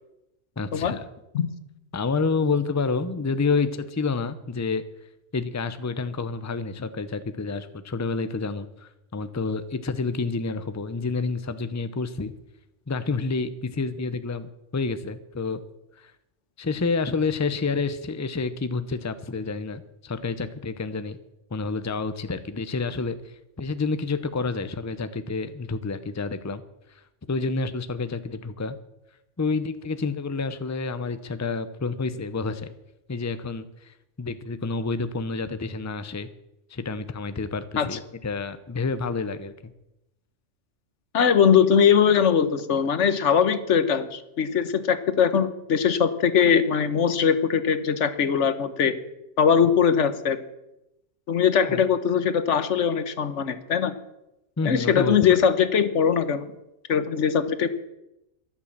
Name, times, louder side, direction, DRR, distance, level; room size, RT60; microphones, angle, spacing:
voice 1, 0.6-1.0 1.9-4.8 5.3-12.3 12.9-15.6 16.0-16.1 16.6-21.2 21.5-26.6 27.3-28.8 29.4-32.7 33.1-36.3 36.7-39.7 51.6-51.8 54.6-55.4, left 4 dB, 20° left, 12 dB, 0.6 m, -29 dB
voice 2, 41.1-49.0 49.4-50.4 51.3-53.9 54.6-56.5 56.9-57.7, left 7 dB, 80° left, 12 dB, 1.3 m, -21 dB
12.5 x 11.5 x 7.3 m, 0.91 s
omnidirectional pair, 1.2 m